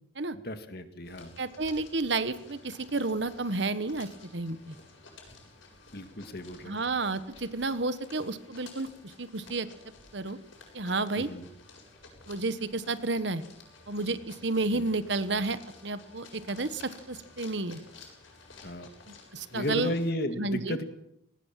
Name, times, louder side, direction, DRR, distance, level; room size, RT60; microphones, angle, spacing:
voice 1, 0.4-1.3 5.9-6.8 11.2-11.5 14.7-14.9 18.6-18.9 19.5-20.8, equal, 55° left, 8 dB, 2.0 m, -34 dB
sound 1, 1.0-20.1, left 3 dB, 90° left, 8.0 m, -53 dB
voice 2, 1.4-4.7 6.7-9.7 10.1-10.4 10.7-11.3 12.3-13.4 13.9-17.8 19.1-19.9 20.4-20.8, right 3 dB, 65° right, 13 dB, 1.2 m, -31 dB
20.0 x 19.0 x 7.4 m, 0.77 s
head